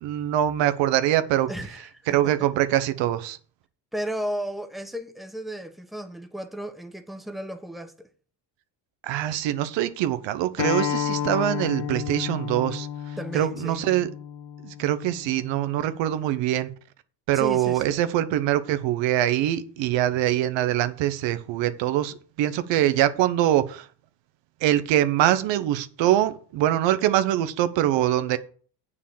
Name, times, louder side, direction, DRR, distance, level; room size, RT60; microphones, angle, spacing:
voice 1, 0.0-1.5 2.1-3.4 9.0-12.9 13.3-14.1 14.6-16.7 17.3-23.9 24.6-28.4, right 12 dB, 90° right, 1.0 m, -23 dB
voice 2, 1.5-2.5 3.9-8.1 13.2-13.8 17.3-18.0, right 1 dB, ahead, 1.4 m, -34 dB
Acoustic guitar, 10.6-15.8, left 9 dB, 75° left, 1.1 m, -31 dB
7.6 x 6.4 x 7.2 m
cardioid pair, 90°, 43 cm